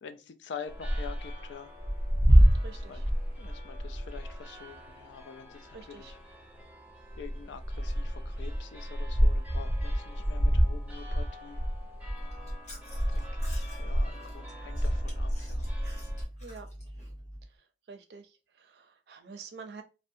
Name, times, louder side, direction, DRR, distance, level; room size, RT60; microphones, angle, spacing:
voice 1, 0.0-1.7 2.7-3.0 3.4-6.2 7.2-11.6 13.1-15.7, left 6 dB, 90° left, 0.4 m, -46 dB
sound 1, 0.7-16.2, equal, 10° right, 0.5 m, -29 dB
voice 2, 2.5-3.0 5.7-6.1 16.4-16.7 17.9-18.3 18.6-19.8, right 5 dB, 70° right, 0.4 m, -47 dB
Chewing mastication, 12.2-17.5, equal, 40° left, 0.9 m, -45 dB
2.5 x 2.1 x 2.6 m
head